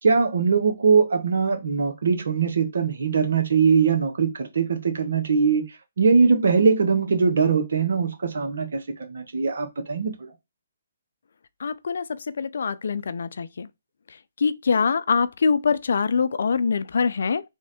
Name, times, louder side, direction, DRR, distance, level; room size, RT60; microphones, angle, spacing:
voice 1, 0.0-5.7 6.0-10.3, right 5 dB, 70° right, 1.4 m, -21 dB
voice 2, 11.6-12.0 12.4-13.7 14.4-17.4, left 5 dB, 70° left, 0.5 m, -23 dB
3.6 x 3.2 x 4.2 m
hypercardioid pair, 150°, 0 cm